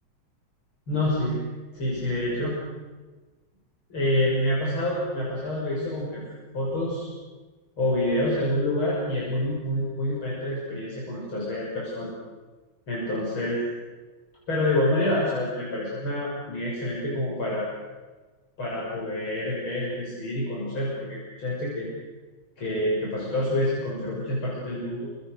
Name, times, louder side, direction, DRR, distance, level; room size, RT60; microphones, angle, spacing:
voice 1, 0.9-1.4 1.7-2.6 3.9-6.2 6.5-7.1 7.8-12.1 12.9-13.6 14.5-17.7 18.6-21.9 22.6-25.1, left 1 dB, 75° left, -5 dB, 7.0 m, -27 dB
29.0 x 26.5 x 6.7 m, 1.3 s
omnidirectional pair, 2.3 m